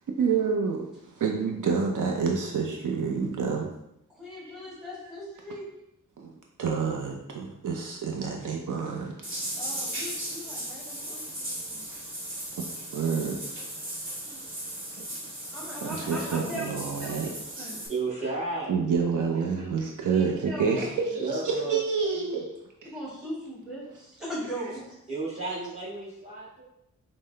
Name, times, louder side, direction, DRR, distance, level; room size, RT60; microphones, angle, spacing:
voice 1, 0.2-3.7 4.5-4.6 6.2-6.3 6.6-9.1 12.6-13.4 15.8-17.5 18.7-22.5 22.8-22.9, right 5 dB, 70° right, 1 dB, 0.6 m, -28 dB
voice 2, 4.2-5.7 9.6-11.9 14.2-14.5 14.9-15.0 15.5-16.6 17.0-17.1 17.5-17.8 20.1-20.9 22.8-25.0, equal, ahead, -6 dB, 1.4 m, -39 dB
sound 1, 9.2-17.9, right 1 dB, 40° right, 1.2 m, -37 dB
voice 3, 15.0-15.3 17.9-18.7 19.5-19.7 21.2-22.3 25.1-26.6, right 3 dB, 20° right, -8 dB, 1.5 m, -33 dB
5.5 x 2.1 x 3.2 m, 0.81 s
wide cardioid pair, 150°, 32 cm